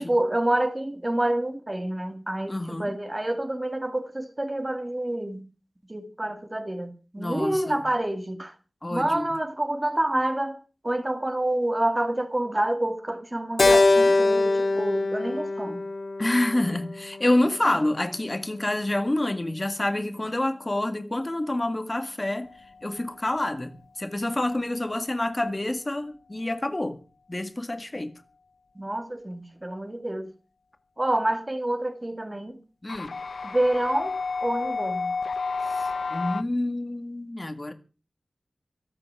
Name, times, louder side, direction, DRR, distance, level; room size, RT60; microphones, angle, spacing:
voice 1, 0.0-5.4 5.9-8.5 8.9-10.6 10.8-15.8 17.7-17.8 28.8-30.3 31.0-32.6 33.4-34.1 34.4-35.2, right 1 dB, 20° right, 2.1 m, -28 dB
voice 2, 2.5-3.0 7.2-7.9 8.8-9.4 16.2-22.5 22.8-27.0 27.3-28.1 32.8-33.2 35.6-37.7, left 1 dB, 25° left, 1.8 m, -28 dB
Keyboard (musical), 13.6-18.0, left 3 dB, 70° left, 2.2 m, -23 dB
sound 1, 22.4-23.3 32.9-36.4, left 4 dB, 90° left, 0.9 m, -31 dB
25.5 x 8.6 x 4.7 m
wide cardioid pair, 90°, 0 cm